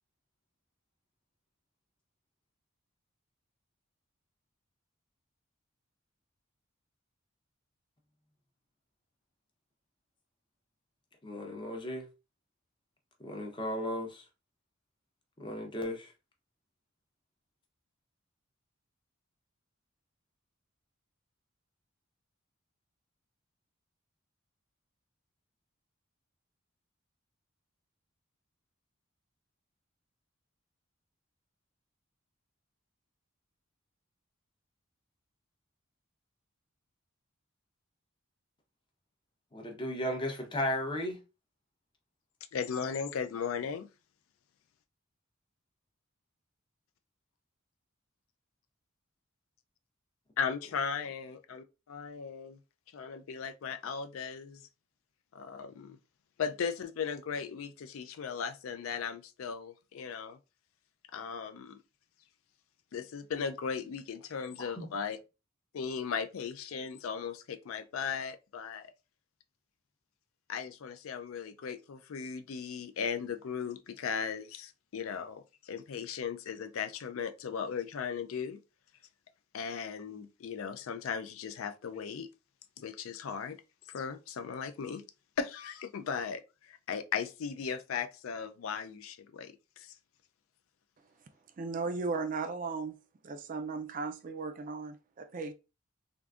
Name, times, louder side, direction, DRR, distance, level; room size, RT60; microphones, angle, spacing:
voice 1, 11.2-12.1 13.2-14.2 15.4-16.1 39.5-41.2 64.6-64.9, left 1 dB, 25° left, 0.7 m, -35 dB
voice 2, 42.5-43.9 50.4-52.6 52.9-54.7 55.3-56.0 56.4-60.4 61.1-61.8 62.9-65.2 65.7-68.9 70.5-78.6 79.5-82.3 82.8-83.6 83.9-85.0 85.4-89.9, left 6 dB, 75° left, 0.4 m, -37 dB
voice 3, 91.6-93.0 93.2-95.5, right 4 dB, 40° right, 0.3 m, -36 dB
3.6 x 2.5 x 2.4 m
head